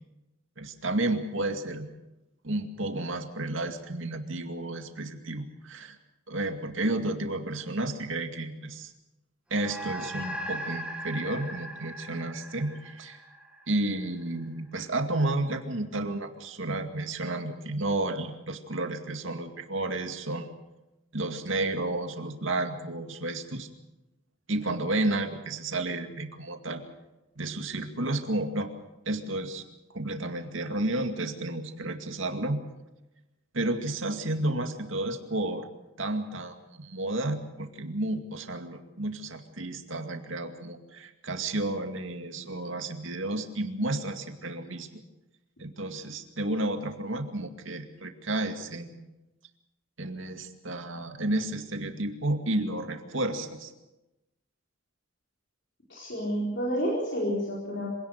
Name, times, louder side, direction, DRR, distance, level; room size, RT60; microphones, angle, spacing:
voice 1, 0.6-1.9 2.4-6.0 6.3-8.9 9.5-13.2 13.7-20.5 21.1-23.7 24.5-26.8 27.4-28.7 29.1-29.6 29.9-32.6 33.5-35.7 36.0-45.0 45.6-49.1 50.0-53.7, right 2 dB, 70° right, 6 dB, 2.2 m, -31 dB
sound 1, 9.5-14.2, right 1 dB, 5° right, 2.0 m, -39 dB
voice 2, 55.9-57.9, equal, 55° left, -4 dB, 4.6 m, -30 dB
25.5 x 18.0 x 6.7 m, 0.99 s
head